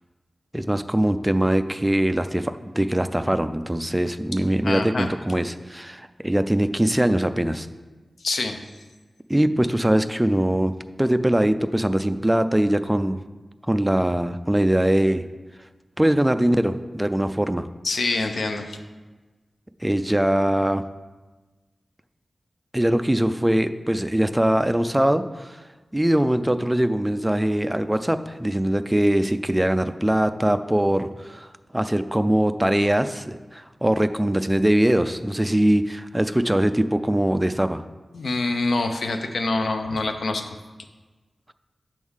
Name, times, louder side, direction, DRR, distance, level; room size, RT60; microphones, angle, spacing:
voice 1, 0.5-7.7 9.3-10.7 11.0-13.2 13.7-15.3 16.0-17.7 19.8-20.8 22.7-25.6 25.9-31.5 31.7-37.8, right 1 dB, 10° right, 10 dB, 0.3 m, -22 dB
voice 2, 4.6-5.1 8.2-8.6 17.8-18.8 38.1-40.6, left 3 dB, 75° left, 6 dB, 0.6 m, -25 dB
7.1 x 3.6 x 6.3 m, 1.3 s
wide cardioid pair, 100°, 0 cm